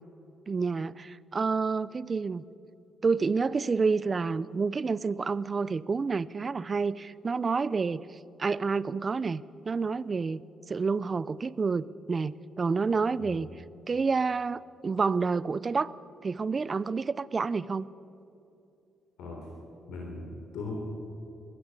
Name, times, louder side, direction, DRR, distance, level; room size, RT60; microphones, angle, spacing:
voice 1, 0.5-2.4 3.0-8.0 8.4-10.4 10.7-13.5 13.9-15.9 16.2-17.9, right 4 dB, 35° right, 18 dB, 0.6 m, -29 dB
voice 2, 19.9-20.7, left 3 dB, 90° left, -1 dB, 3.7 m, -39 dB
21.5 x 13.5 x 9.6 m, 2.7 s
cardioid pair, 90°, 0 cm